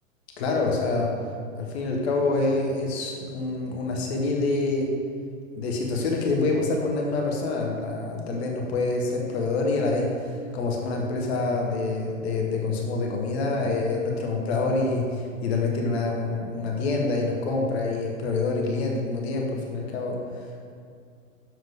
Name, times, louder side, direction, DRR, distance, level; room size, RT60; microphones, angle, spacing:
voice 1, 0.4-1.1 1.5-4.9 5.6-20.7, left 3 dB, 50° left, 0 dB, 1.0 m, -26 dB
6.9 x 5.7 x 3.5 m, 2.3 s
figure-of-eight pair, 100°, 40 cm